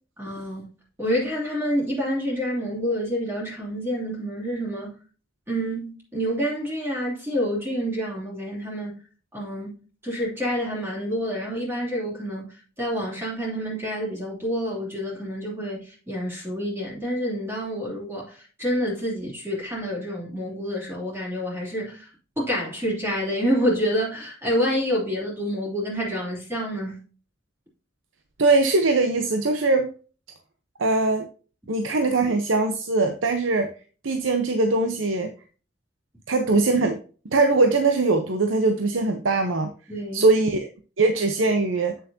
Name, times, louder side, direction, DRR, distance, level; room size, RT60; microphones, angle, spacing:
voice 1, 0.2-0.7 1.0-4.9 5.5-9.0 9.3-9.7 10.0-12.5 12.8-22.1 22.4-27.0 39.9-40.4, equal, 15° right, 3.3 m, -28 dB
voice 2, 28.4-29.9 30.8-31.3 31.7-33.7 34.0-35.3 36.3-37.0 37.2-39.7 40.1-40.7 41.0-41.9, right 3 dB, 80° right, 0.9 m, -21 dB
8.4 x 7.2 x 2.7 m
head